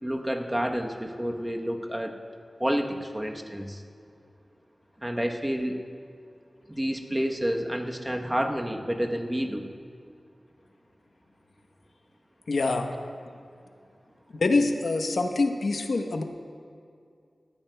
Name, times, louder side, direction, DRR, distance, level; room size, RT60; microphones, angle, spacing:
voice 1, 0.0-2.2 2.6-3.8 5.0-5.8 6.7-9.6, equal, 10° right, 3 dB, 0.9 m, -29 dB
voice 2, 12.5-12.9 14.3-16.2, left 3 dB, 80° left, 5 dB, 0.9 m, -25 dB
18.5 x 14.5 x 2.2 m, 2.4 s
wide cardioid pair, 90°, 0 cm